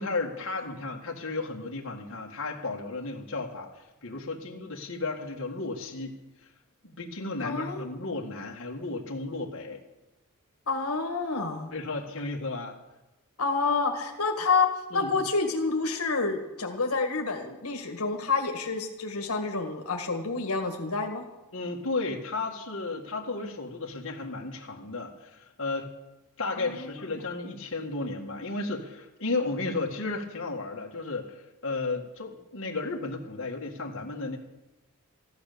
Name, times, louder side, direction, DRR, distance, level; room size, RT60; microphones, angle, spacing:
voice 1, 0.0-6.1 6.8-9.8 11.7-12.8 14.9-15.2 21.5-25.9 26.4-34.4, left 3 dB, 60° left, -1 dB, 1.9 m, -34 dB
voice 2, 7.4-7.9 10.7-11.7 13.4-21.2 26.6-26.9, left 4 dB, 85° left, 3 dB, 1.9 m, -28 dB
15.0 x 11.5 x 6.8 m, 1.0 s
head